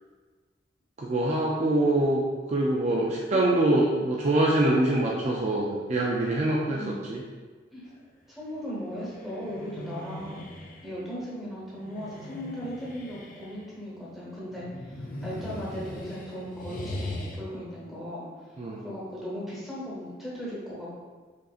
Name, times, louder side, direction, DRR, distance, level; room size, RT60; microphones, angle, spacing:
voice 1, 1.0-2.2 2.5-6.8 7.1-7.2 18.6-18.8, right 1 dB, 35° right, -3 dB, 0.3 m, -24 dB
voice 2, 3.3-3.7 6.7-7.1 7.7-7.9 8.3-10.4 10.8-18.2 18.8-20.9, equal, ahead, -8 dB, 1.0 m, -37 dB
sound 1, 8.5-10.9 11.7-13.7 14.5-17.4, left 1 dB, 45° left, 0.5 m, -40 dB
5.0 x 2.7 x 2.4 m, 1.4 s
head